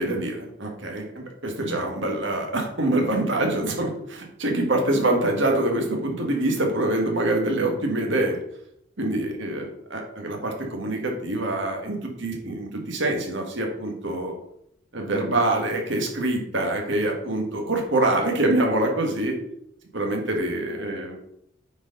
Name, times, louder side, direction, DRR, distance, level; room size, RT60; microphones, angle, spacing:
voice 1, 0.0-8.4 9.0-14.3 14.9-19.4 19.9-21.2, right 1 dB, 60° right, 1 dB, 1.7 m, -25 dB
9.3 x 4.5 x 4.0 m, 0.74 s
head